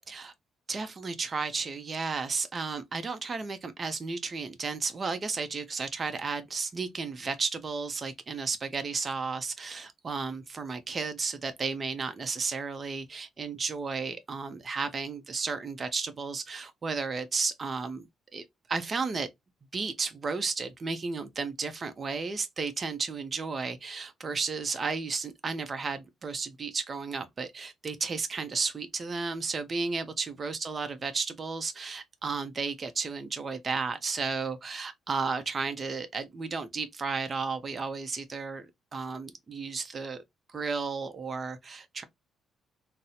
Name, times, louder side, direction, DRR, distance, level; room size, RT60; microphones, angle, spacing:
voice 1, 0.7-18.1 18.3-19.3 19.7-40.2 40.5-42.0, right 4 dB, 35° right, 0.5 m, -33 dB
3.9 x 2.0 x 2.7 m
cardioid pair, 90°, 0 cm